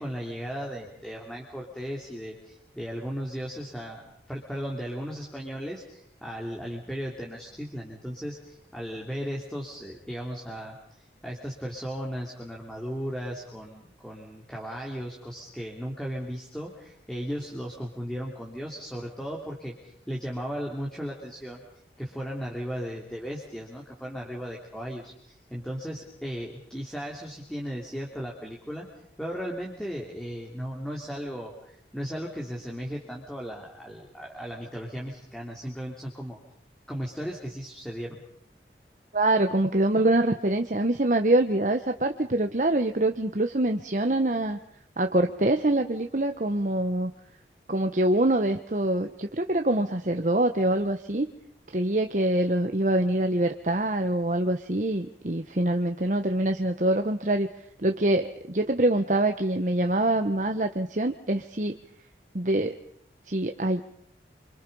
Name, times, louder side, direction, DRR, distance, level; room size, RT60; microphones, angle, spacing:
voice 1, 0.0-21.6 22.0-28.9 29.2-36.4 36.9-38.2, equal, 5° left, -2 dB, 2.9 m, -36 dB
voice 2, 39.1-44.6 45.0-47.1 47.7-51.3 51.7-57.5 57.8-61.8 62.3-62.8 63.3-63.8, right 1 dB, 45° right, 6 dB, 1.1 m, -25 dB
28.0 x 25.5 x 5.4 m, 0.68 s
head